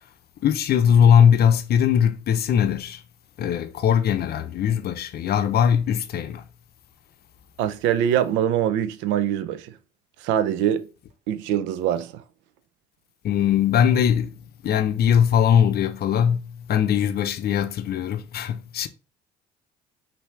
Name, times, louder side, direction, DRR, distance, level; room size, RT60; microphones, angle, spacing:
voice 1, 0.4-3.0 3.4-6.4 13.2-18.9, left 8 dB, 50° left, 0.6 m, -20 dB
voice 2, 7.6-9.7 10.2-10.9 11.3-12.2, right 10 dB, 65° right, 0.5 m, -23 dB
5.5 x 2.8 x 3.1 m
hypercardioid pair, 50°, 20 cm